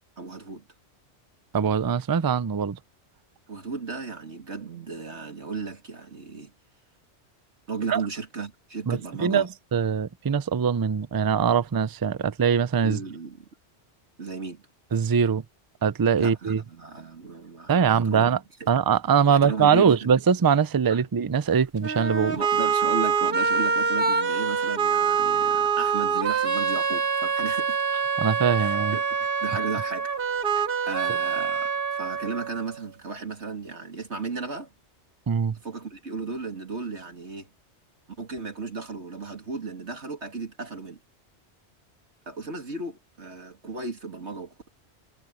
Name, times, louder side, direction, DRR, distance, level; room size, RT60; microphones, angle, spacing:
voice 1, 0.2-0.6 3.5-6.5 7.7-9.5 12.8-13.5 14.2-14.6 16.2-18.3 18.6-18.7 19.3-20.1 20.9-21.0 22.3-27.8 28.6-30.1 30.5-30.6 30.9-34.7 35.6-37.5 38.2-41.0 42.3-44.7, right 4 dB, 75° right, 3.1 m, -35 dB
voice 2, 1.5-2.8 7.9-8.0 8.9-13.0 14.9-15.4 15.8-16.6 17.7-18.4 18.7-22.4 28.2-29.0 35.3-35.6, right 7 dB, 40° right, 0.3 m, -22 dB
sound 1, 21.8-32.8, right 6 dB, 55° right, 1.5 m, -25 dB
omnidirectional pair, 1.2 m